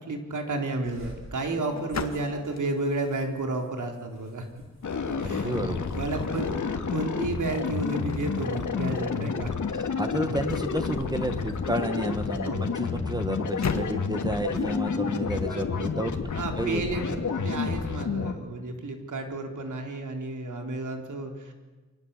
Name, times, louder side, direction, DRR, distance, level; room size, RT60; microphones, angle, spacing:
voice 1, 0.0-4.5 5.2-5.5 5.9-6.5 6.9-9.6 12.4-12.6 16.3-21.5, right 2 dB, 85° right, 4 dB, 4.0 m, -32 dB
sound 1, 0.8-17.0, left 5 dB, 60° left, 2.0 m, -42 dB
sound 2, 0.8-6.2 6.6-7.0 7.4-9.4 9.9-12.1, right 2 dB, 45° right, 5.9 m, -49 dB
sound 3, 4.8-18.3, left 5 dB, 80° left, 2.5 m, -30 dB
voice 2, 5.2-5.9 9.7-16.2 16.6-16.8, right 1 dB, 15° right, 8 dB, 1.6 m, -31 dB
29.0 x 24.0 x 8.3 m, 1.3 s
wide cardioid pair, 175°, 30 cm